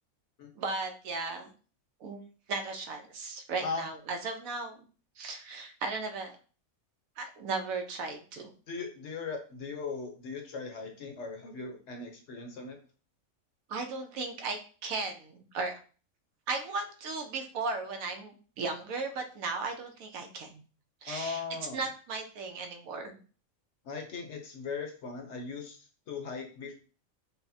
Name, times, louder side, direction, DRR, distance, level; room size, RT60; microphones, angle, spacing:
voice 1, 0.6-1.5 2.0-2.2 2.5-4.8 5.2-6.3 7.2-8.5 13.7-15.8 16.5-20.6 21.0-21.4 21.7-23.2, right 3 dB, 80° right, 5 dB, 1.1 m, -36 dB
voice 2, 8.7-12.8 21.1-21.8 23.8-26.8, left 4 dB, 60° left, 3 dB, 0.9 m, -38 dB
5.4 x 2.1 x 2.6 m, 0.38 s
omnidirectional pair, 1.5 m